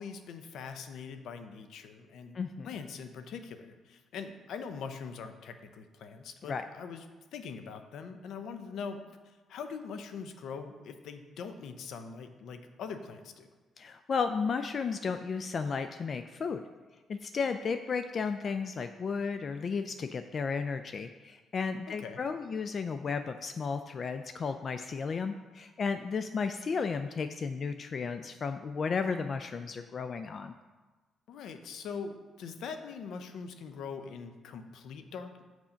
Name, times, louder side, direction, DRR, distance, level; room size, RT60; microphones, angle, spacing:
voice 1, 0.0-2.4 2.6-7.0 7.3-13.5 21.9-22.2 31.3-35.4, left 5 dB, 75° left, 8 dB, 0.6 m, -42 dB
voice 2, 2.3-2.7 6.4-6.6 13.8-16.6 17.1-30.5, left 5 dB, 45° left, 9 dB, 0.3 m, -33 dB
6.1 x 5.6 x 5.1 m, 1.3 s
cardioid pair, 90°, 0 cm